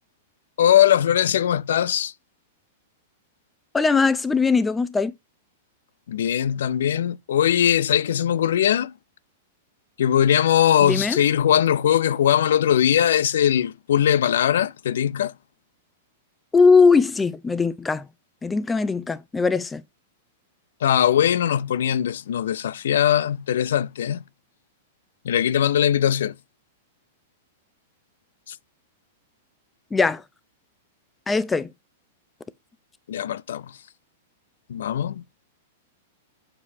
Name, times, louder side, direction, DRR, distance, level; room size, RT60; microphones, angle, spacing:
voice 1, 0.6-2.1 6.1-8.9 10.0-15.3 20.8-24.2 25.2-26.3 28.5-28.6 33.1-33.6 34.7-35.2, left 10 dB, 70° left, 0.4 m, -20 dB
voice 2, 3.7-5.1 10.8-11.2 16.5-18.0 18.4-19.8 29.9-30.2 31.3-31.7, left 4 dB, 15° left, 0.6 m, -20 dB
7.5 x 4.7 x 2.7 m
hypercardioid pair, 110°, 0 cm